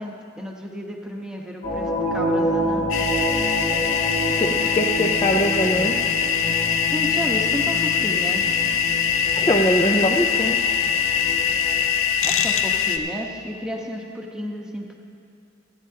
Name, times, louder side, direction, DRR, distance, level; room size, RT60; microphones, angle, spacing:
voice 1, 0.0-3.1 6.9-8.6 12.2-15.0, equal, 5° right, 0 dB, 1.0 m, -32 dB
sound 1, 1.6-11.9, equal, 50° left, 3.1 m, -28 dB
sound 2, 2.9-13.0, left 8 dB, 70° left, 0.6 m, -22 dB
voice 2, 4.4-6.0 9.4-10.6, equal, 20° left, 2 dB, 0.5 m, -22 dB
26.0 x 9.6 x 2.8 m, 2.6 s
head